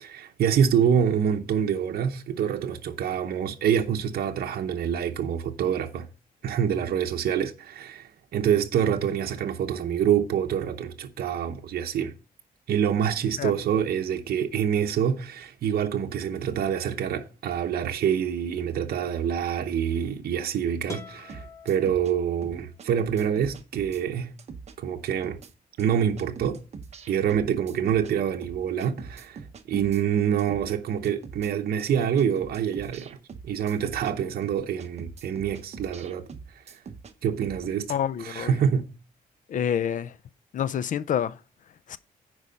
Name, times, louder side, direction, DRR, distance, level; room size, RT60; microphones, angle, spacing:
voice 1, 0.0-6.1 6.4-12.1 12.7-24.3 24.8-25.4 25.8-26.6 27.1-29.4 29.7-33.2 33.4-36.3 36.5-36.8 37.2-37.9 38.2-38.9, right 8 dB, 70° right, 0.8 m, -26 dB
sound 1, 20.9-22.8, left 2 dB, 20° left, 1.2 m, -44 dB
sound 2, 21.3-22.1 22.4-24.0 24.4-24.7 25.0-25.5 25.8-25.9 26.2-28.1 28.4-30.0 30.4-30.7 31.0-31.5 31.8-31.9 32.2-34.1 34.4-37.1 37.4-37.6, right 5 dB, 40° right, 0.9 m, -43 dB
voice 2, 37.9-38.6 39.5-40.2 40.5-42.0, left 9 dB, 55° left, 0.4 m, -28 dB
9.7 x 4.8 x 5.2 m
wide cardioid pair, 150°, 16 cm